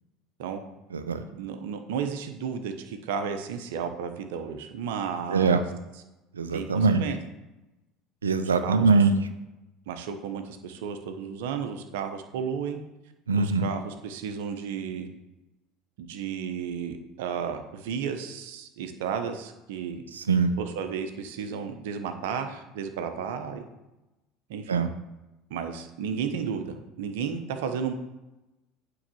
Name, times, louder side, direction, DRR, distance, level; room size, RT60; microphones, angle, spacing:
voice 1, 1.3-5.6 5.9-6.0 6.5-7.2 8.6-8.9 9.9-12.8 13.4-15.1 16.0-20.0 20.6-23.7 24.5-24.8 25.5-27.9, right 7 dB, 70° right, 7 dB, 1.0 m, -33 dB
voice 2, 5.3-5.6 6.4-7.0 8.2-9.1 13.3-13.7 20.2-20.5 24.7-24.9, right 4 dB, 85° right, 9 dB, 0.6 m, -22 dB
8.8 x 3.9 x 7.0 m, 1.0 s
hypercardioid pair, 70°, 0 cm